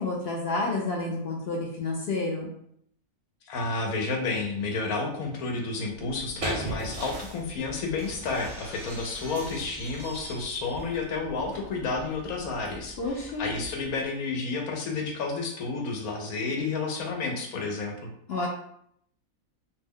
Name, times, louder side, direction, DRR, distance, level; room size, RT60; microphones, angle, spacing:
voice 1, 0.0-2.5 13.0-13.5 18.3-18.5, left 3 dB, 65° left, -1 dB, 0.6 m, -30 dB
voice 2, 3.5-17.9, left 3 dB, 90° left, 1 dB, 1.1 m, -31 dB
sound 1, 5.9-14.0, right 1 dB, 50° right, 0.7 m, -40 dB
Shatter, 8.2-11.0, right 1 dB, 5° right, 0.5 m, -45 dB
2.6 x 2.2 x 3.5 m, 0.69 s
omnidirectional pair, 1.5 m